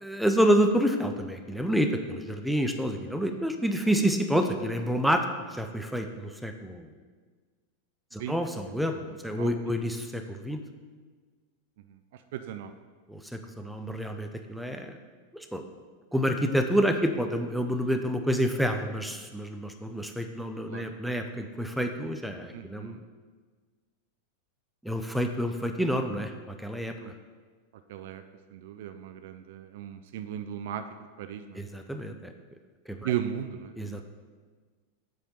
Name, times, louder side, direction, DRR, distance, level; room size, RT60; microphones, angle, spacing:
voice 1, 0.0-5.2 5.5-6.9 8.1-10.6 13.1-15.0 15.3-15.6 16.1-23.0 24.8-26.3 26.6-26.9 31.5-32.3 32.9-33.1 33.8-34.0, equal, ahead, 5 dB, 0.5 m, -28 dB
voice 2, 9.3-9.7 11.9-12.7 20.7-20.9 22.5-23.0 27.0-27.1 27.9-28.2 28.5-30.8 31.2-31.6 33.0-34.0, right 10 dB, 55° right, 8 dB, 0.4 m, -36 dB
7.7 x 3.3 x 5.4 m, 1.5 s
figure-of-eight pair, 90°, 0 cm